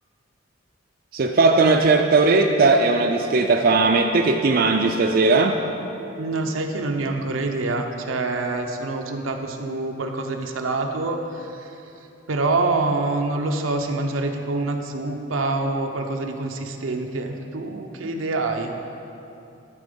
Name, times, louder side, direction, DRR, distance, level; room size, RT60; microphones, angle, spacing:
voice 1, 1.1-5.6, right 3 dB, 45° right, 4 dB, 0.4 m, -18 dB
voice 2, 6.2-11.8 12.3-18.7, right 2 dB, 85° right, 4 dB, 0.7 m, -26 dB
12.0 x 4.2 x 5.2 m, 2.8 s
head